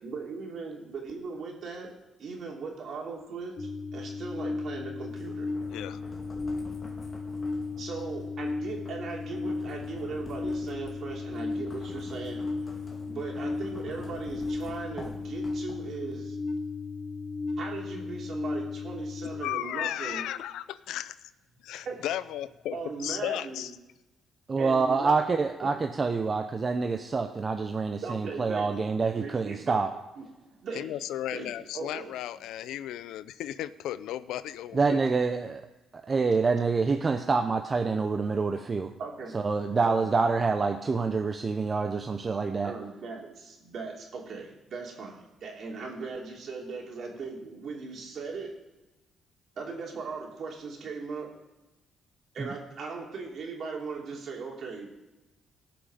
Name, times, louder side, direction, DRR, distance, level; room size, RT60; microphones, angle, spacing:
voice 1, 0.0-1.9 2.2-5.5 7.8-12.5 13.1-16.4 17.6-20.2 21.8-22.0 22.7-23.7 24.6-25.2 28.0-29.9 30.2-30.3 30.6-32.1 39.0-39.3 39.8-40.1 42.6-48.5 49.6-51.3 52.3-54.9, right 4 dB, 60° right, -1 dB, 3.1 m, -38 dB
sound 1, 3.6-19.4, left 3 dB, 45° left, 1.6 m, -35 dB
sound 2, 5.1-16.1, left 1 dB, 30° left, 2.5 m, -49 dB
voice 2, 5.7-6.0 19.4-21.1 21.6-23.7 30.7-35.0, left 12 dB, 85° left, 15 dB, 0.5 m, -35 dB
voice 3, 24.5-29.9 34.7-35.6 36.1-38.9 39.3-42.7 52.4-52.5, right 4 dB, 35° right, 6 dB, 0.7 m, -27 dB
18.0 x 6.1 x 5.0 m, 1.0 s
cardioid pair, 90°, 0 cm